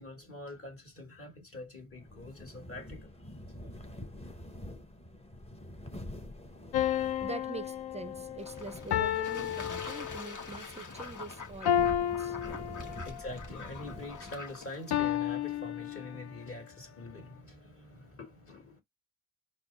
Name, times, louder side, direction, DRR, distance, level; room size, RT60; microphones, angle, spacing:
voice 1, 0.0-3.1 13.1-18.8, left 2 dB, 35° left, 2.0 m, -45 dB
sound 1, 1.9-14.7, left 1 dB, 15° left, 0.9 m, -47 dB
sound 2, 6.7-10.5 11.7-13.2 14.9-16.5, left 10 dB, 90° left, 0.6 m, -32 dB
voice 2, 7.2-12.6 13.0-13.1, right 3 dB, 20° right, 0.4 m, -44 dB
Fowl / Bird / Water, 8.4-14.9, left 5 dB, 50° left, 1.2 m, -46 dB
4.3 x 2.2 x 4.0 m
cardioid pair, 90°, 37 cm